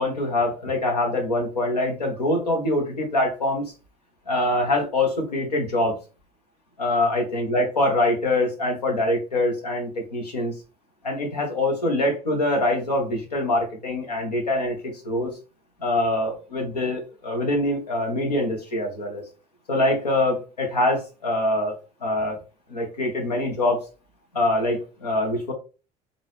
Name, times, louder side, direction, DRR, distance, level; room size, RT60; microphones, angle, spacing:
voice 1, 0.0-3.7 4.3-6.0 6.8-10.5 11.0-15.3 15.8-19.2 19.7-21.7 22.0-22.4 22.7-23.9 24.3-25.5, left 1 dB, 90° left, 2 dB, 1.0 m, -24 dB
3.8 x 2.6 x 3.1 m, 0.33 s
hypercardioid pair, 60°, 20 cm